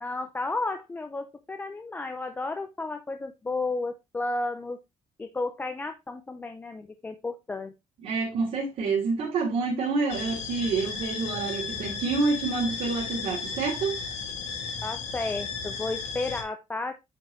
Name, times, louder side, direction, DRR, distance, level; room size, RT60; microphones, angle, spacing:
voice 1, 0.0-4.8 5.2-7.7 14.8-16.9, left 3 dB, 15° left, 0.5 m, -33 dB
voice 2, 8.0-14.0, right 4 dB, 65° right, 3.1 m, -28 dB
sound 1, 10.1-16.4, left 5 dB, 75° left, 2.0 m, -34 dB
8.7 x 4.8 x 3.0 m
cardioid pair, 175°, 12 cm